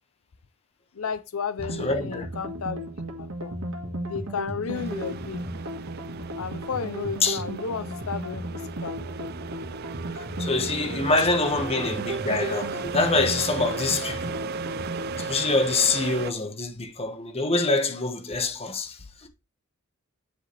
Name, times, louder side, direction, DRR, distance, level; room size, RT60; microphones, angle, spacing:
voice 1, 0.9-2.9 3.2-3.5 4.0-5.4 6.4-9.3 10.8-11.3, left 6 dB, 85° left, 0.6 m, -33 dB
sound 1, 1.6-15.3, right 1 dB, 70° right, 1.7 m, -35 dB
voice 2, 1.8-2.3 7.2-7.4 10.1-14.4 15.1-19.3, left 3 dB, 30° left, 1.3 m, -25 dB
sound 2, 4.7-16.3, right 5 dB, 50° right, 0.4 m, -36 dB
9.8 x 4.9 x 3.4 m
head